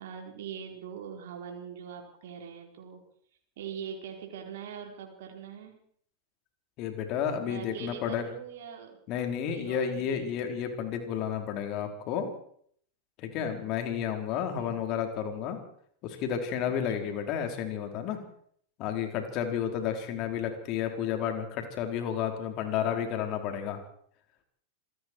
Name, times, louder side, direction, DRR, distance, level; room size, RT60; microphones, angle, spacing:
voice 1, 0.0-3.0 3.6-5.8 7.5-9.0 9.5-10.3 13.3-13.6 14.6-14.8 16.6-17.1 20.4-20.5, right 7 dB, 55° right, 1 dB, 4.6 m, -42 dB
voice 2, 6.8-8.2 9.1-12.3 13.2-15.6 16.0-18.2 18.8-23.8, left 8 dB, 40° left, 5 dB, 4.5 m, -31 dB
27.0 x 20.0 x 4.8 m, 0.64 s
figure-of-eight pair, 90°, 0 cm